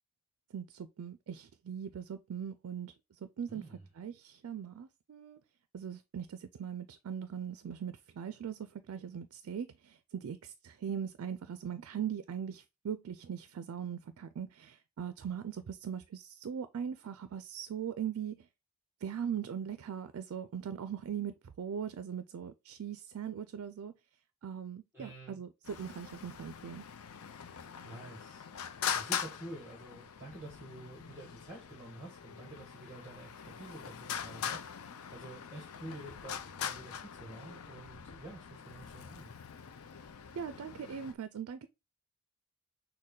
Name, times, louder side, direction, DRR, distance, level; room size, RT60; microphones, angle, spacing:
voice 1, 0.5-3.7 3.9-5.4 5.7-18.5 19.0-23.9 24.4-26.8 40.4-41.7, right 8 dB, 75° right, 0.4 m, -40 dB
voice 2, 3.5-3.9 24.9-25.4 27.8-28.5 28.9-39.4, right 1 dB, 10° right, 1.2 m, -49 dB
Traffic noise roadway noise, 25.6-41.1, left 8 dB, 85° left, 0.5 m, -42 dB
6.4 x 2.2 x 3.8 m
head